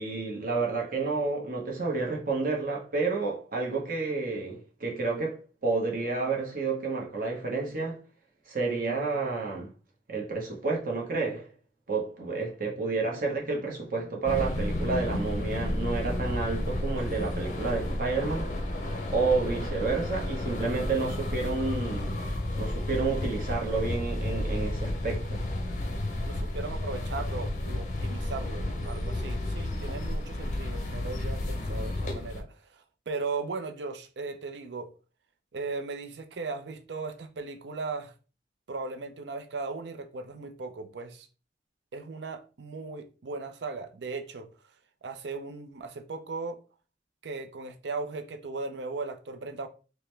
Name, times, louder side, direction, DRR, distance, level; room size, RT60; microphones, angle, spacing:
voice 1, 0.0-8.0 8.5-9.7 10.1-11.5 11.9-18.5 19.1-22.2 22.6-25.4, right 3 dB, 50° right, 0.9 m, -30 dB
voice 2, 12.4-14.1 26.2-34.9 35.5-38.1 38.7-41.3 41.9-44.5 45.0-46.6 47.2-49.7, right 4 dB, 75° right, 0.5 m, -38 dB
sound 1, 14.3-32.4, left 1 dB, 40° left, 0.6 m, -32 dB
4.7 x 2.1 x 3.2 m
head